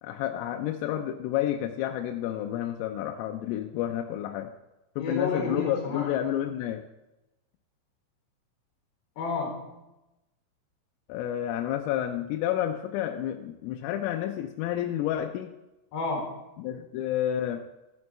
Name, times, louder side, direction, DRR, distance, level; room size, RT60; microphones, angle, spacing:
voice 1, 0.0-4.5 5.0-6.8 11.1-15.5 16.6-17.7, left 11 dB, 90° left, 4 dB, 3.3 m, -30 dB
voice 2, 5.0-6.1 9.2-9.8 15.9-16.3, left 3 dB, 65° left, 0 dB, 3.8 m, -31 dB
13.5 x 7.6 x 4.2 m, 0.96 s
omnidirectional pair, 5.8 m